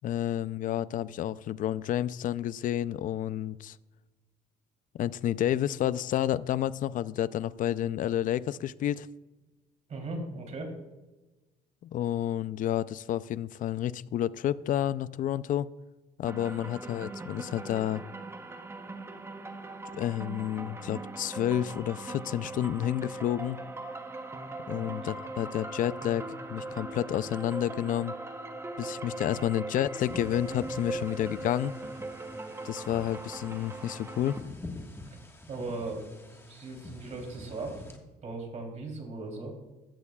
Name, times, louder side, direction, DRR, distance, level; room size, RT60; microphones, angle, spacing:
voice 1, 0.0-3.8 4.9-9.1 11.8-15.7 16.2-18.0 19.9-23.6 24.7-28.1 28.8-31.7 32.6-34.4, left 11 dB, 55° left, 0.4 m, -30 dB
voice 2, 9.9-10.7 24.6-24.9 35.5-37.8 38.2-39.5, right 2 dB, 45° right, 3.2 m, -38 dB
sound 1, 16.2-34.4, right 2 dB, 15° right, 0.9 m, -40 dB
sound 2, 30.0-38.0, left 2 dB, 15° left, 1.5 m, -47 dB
15.0 x 12.0 x 2.3 m
cardioid pair, 110°, 17 cm